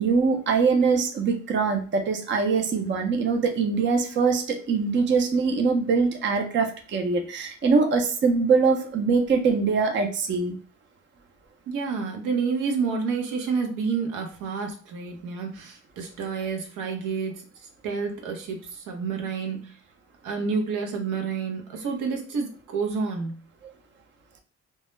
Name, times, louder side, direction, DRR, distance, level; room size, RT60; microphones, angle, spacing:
voice 1, 0.0-10.5, right 4 dB, 40° right, 5 dB, 0.5 m, -23 dB
voice 2, 11.7-17.4 17.8-19.8 20.2-23.4, right 5 dB, 85° right, 2 dB, 0.7 m, -29 dB
2.2 x 2.1 x 3.0 m, 0.40 s
cardioid pair, 90°, 30 cm